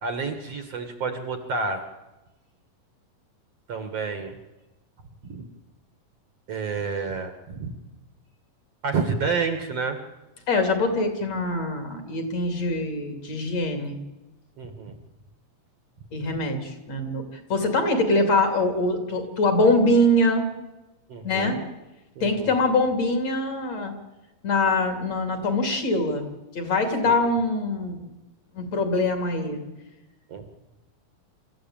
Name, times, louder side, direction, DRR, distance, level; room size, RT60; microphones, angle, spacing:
voice 1, 0.0-1.8 3.7-4.4 5.3-5.5 6.5-7.7 8.8-10.0 14.6-14.9 21.1-21.7 22.2-22.5 27.0-27.1 30.3-30.4, right 4 dB, 50° right, 7 dB, 2.4 m, -29 dB
voice 2, 10.5-14.0 16.1-20.5 21.2-21.6 22.2-23.9 24.4-26.3 26.6-28.1 28.5-29.6, left 2 dB, 50° left, 6 dB, 3.8 m, -23 dB
26.0 x 14.5 x 8.9 m, 1.0 s
omnidirectional pair, 4.1 m